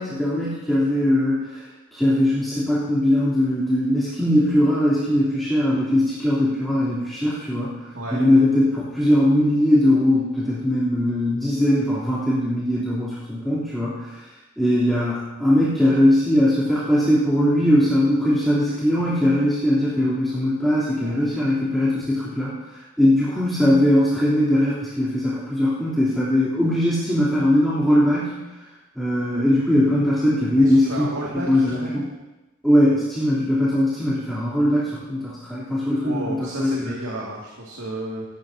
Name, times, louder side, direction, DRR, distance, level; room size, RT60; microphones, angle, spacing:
voice 1, 0.0-7.8 8.1-14.2 14.6-22.5 23.0-28.4 28.9-31.1 31.5-32.0 32.6-36.9, left 1 dB, ahead, -11 dB, 3.3 m, -20 dB
voice 2, 30.6-32.1 36.0-38.2, right 1 dB, 80° right, -4 dB, 2.4 m, -32 dB
20.0 x 14.5 x 2.8 m, 1.1 s
head